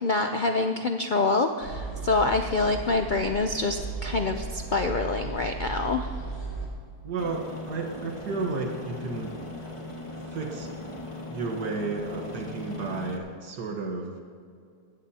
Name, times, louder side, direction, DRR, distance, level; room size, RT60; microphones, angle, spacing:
voice 1, 0.0-6.1, left 3 dB, 90° left, 5 dB, 0.4 m, -26 dB
sound 1, 1.6-6.7, right 3 dB, 60° left, 4.4 m, -35 dB
voice 2, 7.0-9.4 10.3-10.7 11.3-14.2, right 3 dB, 85° right, 2 dB, 1.9 m, -32 dB
Aircraft, 7.2-13.2, left 1 dB, 20° left, 1.3 m, -39 dB
19.0 x 15.0 x 2.8 m, 2.3 s
omnidirectional pair, 1.7 m